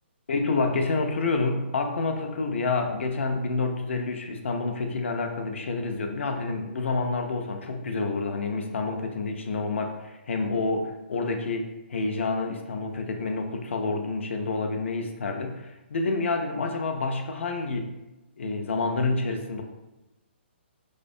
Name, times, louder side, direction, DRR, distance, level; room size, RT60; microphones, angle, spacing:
voice 1, 0.3-17.9 18.4-19.6, left 3 dB, 90° left, 4 dB, 0.3 m, -28 dB
2.4 x 2.1 x 2.5 m, 0.99 s
hypercardioid pair, 165°, 6 cm